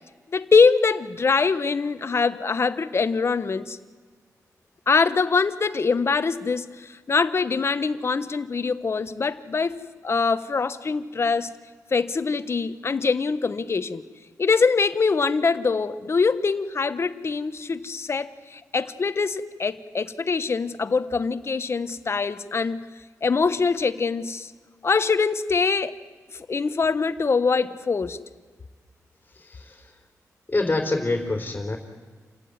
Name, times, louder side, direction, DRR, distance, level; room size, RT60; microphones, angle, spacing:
voice 1, 0.3-3.8 4.9-11.5 11.9-14.0 14.4-22.9 23.2-24.5 24.8-25.9 26.5-28.2, left 4 dB, 45° left, 12 dB, 1.2 m, -23 dB
voice 2, 30.5-31.8, left 2 dB, 25° left, 3 dB, 3.7 m, -25 dB
28.5 x 15.5 x 9.7 m, 1.5 s
cardioid pair, 80°, 6 cm